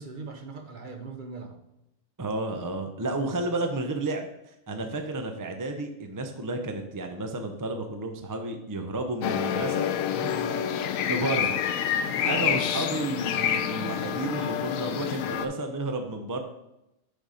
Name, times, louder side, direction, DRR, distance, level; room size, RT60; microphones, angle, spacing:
voice 1, 0.0-1.6 10.1-10.7 12.0-12.5, right 4 dB, 45° right, 5 dB, 0.8 m, -40 dB
voice 2, 2.2-4.3 4.7-9.9 11.0-11.6 12.2-16.4, right 2 dB, 30° right, 5 dB, 0.4 m, -31 dB
sound 1, 9.2-15.5, left 9 dB, 85° left, 1.0 m, -28 dB
6.6 x 4.1 x 5.0 m, 0.87 s
omnidirectional pair, 1.4 m